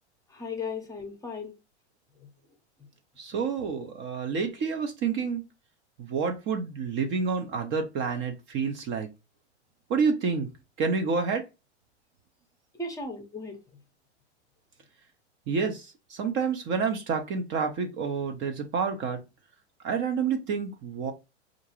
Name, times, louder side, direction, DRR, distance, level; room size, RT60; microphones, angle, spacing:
voice 1, 0.3-1.5 2.1-2.3 2.8-2.9 12.7-13.6, left 3 dB, 10° left, 0.7 m, -36 dB
voice 2, 3.2-5.4 6.0-9.1 9.9-10.5 10.8-11.4 15.5-19.2 19.8-21.1, right 5 dB, 35° right, 0.6 m, -29 dB
4.4 x 2.6 x 2.9 m
hypercardioid pair, 105°, 34 cm